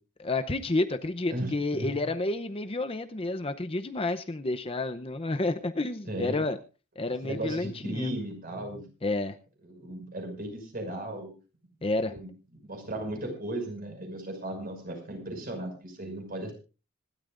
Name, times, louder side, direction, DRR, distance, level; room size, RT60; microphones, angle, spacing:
voice 1, 0.2-6.6 7.0-8.2 9.0-9.3 11.8-12.1, left 2 dB, 25° left, 9 dB, 0.7 m, -30 dB
voice 2, 1.3-2.1 6.0-6.4 7.2-8.8 9.6-11.3 11.8-12.3 12.6-16.5, right 1 dB, 45° right, 4 dB, 5.9 m, -36 dB
26.0 x 12.5 x 2.6 m, 0.34 s
head